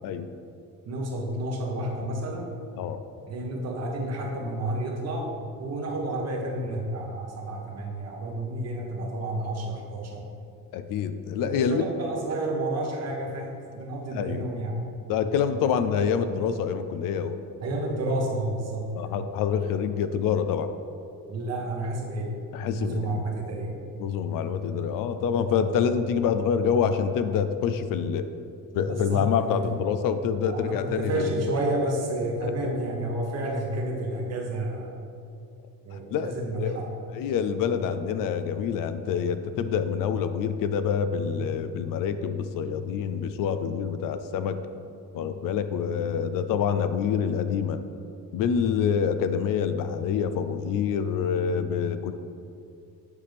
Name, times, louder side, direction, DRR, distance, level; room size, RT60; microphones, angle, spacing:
voice 1, 0.8-2.5 3.3-5.3 5.6-10.2 11.4-14.8 17.6-19.2 21.3-22.3 22.7-23.8 28.9-29.6 30.4-35.0 35.8-37.0, right 1 dB, 50° right, 0 dB, 1.2 m, -30 dB
voice 2, 10.7-11.8 14.1-14.4 15.1-17.4 18.9-20.7 22.5-23.2 24.0-28.3 28.7-31.2 32.4-32.7 35.9-36.8 37.1-44.6 45.1-47.8 48.3-52.1, left 7 dB, 70° left, 10 dB, 0.5 m, -26 dB
8.3 x 5.0 x 3.4 m, 2.4 s
cardioid pair, 115°, 33 cm